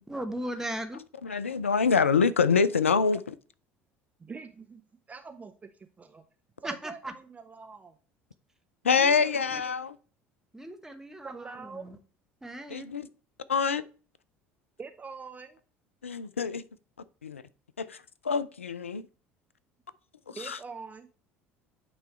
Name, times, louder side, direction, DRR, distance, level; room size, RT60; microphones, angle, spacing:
voice 1, 0.1-1.0 6.6-7.1 8.8-9.6 10.5-12.0 12.4-12.9, right 1 dB, 5° right, 1.1 m, -38 dB
voice 2, 1.2-3.2 8.8-10.0 12.7-13.1 13.5-13.8 16.0-16.6 17.2-17.4 17.8-19.0 20.3-20.6, left 5 dB, 85° left, 0.3 m, -25 dB
voice 3, 4.2-4.8 5.1-6.2 6.6-8.0 11.2-12.0 14.8-15.6 20.3-21.1, right 5 dB, 20° right, 0.6 m, -44 dB
9.0 x 3.1 x 4.2 m
figure-of-eight pair, 65°, 7 cm